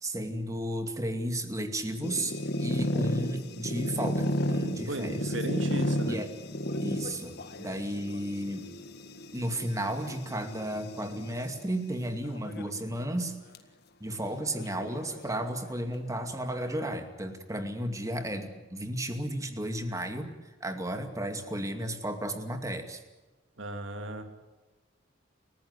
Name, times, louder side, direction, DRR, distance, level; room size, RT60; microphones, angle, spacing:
voice 1, 0.0-5.3 6.1-6.3 6.8-8.7 9.3-13.4 14.0-23.0, right 1 dB, 15° right, 6 dB, 2.4 m, -33 dB
sound 1, 2.0-11.5 12.2-12.8 13.1-13.2 13.5-13.6 14.5-15.7, equal, 55° left, 1.9 m, -33 dB
voice 2, 4.9-6.2 23.6-24.2, right 1 dB, 70° right, 6 dB, 3.0 m, -35 dB
29.5 x 15.0 x 8.3 m, 1.2 s
head